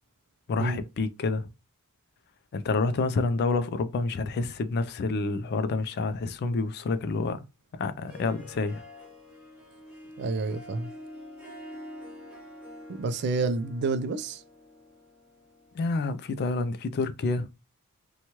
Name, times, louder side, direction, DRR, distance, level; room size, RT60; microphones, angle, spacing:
voice 1, 0.5-1.5 2.5-7.4 7.8-8.8 15.7-17.5, left 3 dB, 45° left, 0.3 m, -28 dB
Harp, 7.9-16.5, left 1 dB, 5° right, 1.2 m, -47 dB
voice 2, 10.2-10.9 12.9-14.4, right 3 dB, 50° right, 0.3 m, -29 dB
2.9 x 2.2 x 2.9 m
head